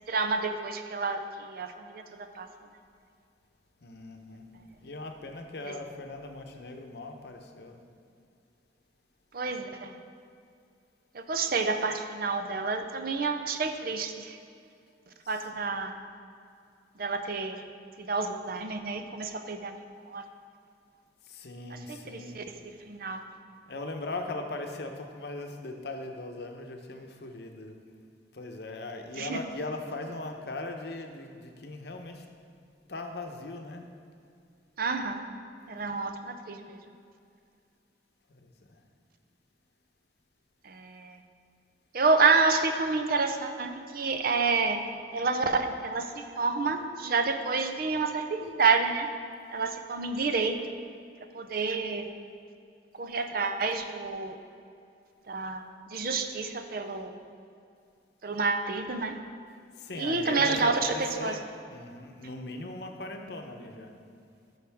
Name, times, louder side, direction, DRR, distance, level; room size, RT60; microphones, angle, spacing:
voice 1, 0.1-2.5 5.6-5.7 9.3-10.0 11.1-14.4 15.3-16.0 17.0-17.6 18.0-19.8 20.1-20.2 21.7-22.5 22.9-23.2 29.2-29.4 34.8-35.3 35.7-36.8 40.6-41.2 41.9-44.8 45.1-49.1 49.5-50.8 51.3-52.1 53.0-54.4 55.3-57.2 58.2-59.2 59.9-61.4, right 4 dB, 50° right, 7 dB, 0.6 m, -29 dB
voice 2, 3.8-4.5 4.8-7.8 15.2-15.4 21.2-22.4 23.7-27.8 28.3-32.2 32.9-33.9 38.3-38.8 59.8-61.4 61.7-64.0, left 2 dB, 60° left, 4 dB, 0.8 m, -39 dB
13.0 x 6.3 x 3.5 m, 2.4 s
head